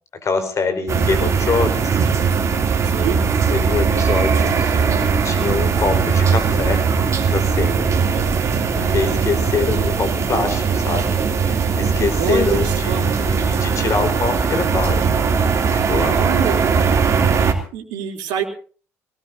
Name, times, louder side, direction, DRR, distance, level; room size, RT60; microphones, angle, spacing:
voice 1, 0.2-2.0 3.5-6.8 7.3-7.9 8.8-11.2 11.4-15.0 15.6-16.2, left 4 dB, 40° left, 7 dB, 4.5 m, -24 dB
sound 1, 0.9-17.5, right 5 dB, 40° right, 3.1 m, -19 dB
voice 2, 2.8-3.2 8.1-8.3 8.8-9.1 12.2-13.1 16.1-16.6 17.7-18.4, right 8 dB, 70° right, 3 dB, 3.6 m, -26 dB
24.0 x 19.0 x 2.8 m, 0.40 s
hypercardioid pair, 60°, 8 cm